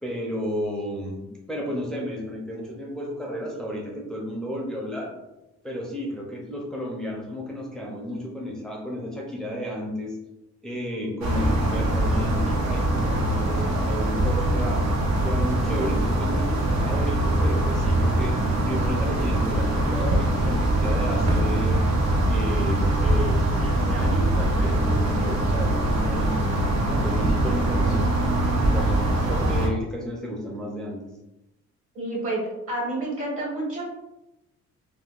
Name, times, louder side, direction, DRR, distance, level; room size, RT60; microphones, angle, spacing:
voice 1, 0.0-5.1 5.6-10.2 10.6-14.9 15.2-18.4 18.6-21.8 22.3-26.4 26.9-29.0 29.3-31.0, equal, ahead, -2 dB, 0.6 m, -32 dB
sound 1, 11.2-29.7, right 1 dB, 65° right, 0.7 m, -23 dB
voice 2, 31.9-32.4 32.7-33.8, right 2 dB, 50° right, -4 dB, 1.3 m, -29 dB
3.6 x 2.2 x 2.4 m, 0.94 s
cardioid pair, 110°, 29 cm